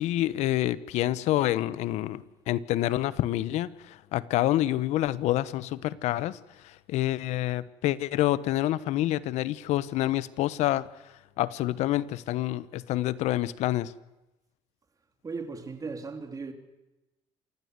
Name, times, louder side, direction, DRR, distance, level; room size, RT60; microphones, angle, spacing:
voice 1, 0.0-6.4 6.6-10.9 11.4-13.9, left 15 dB, 75° left, 1.1 m, -27 dB
voice 2, 15.2-16.5, right 4 dB, 30° right, 3.3 m, -37 dB
27.5 x 15.5 x 8.1 m
supercardioid pair, 85°, 12 cm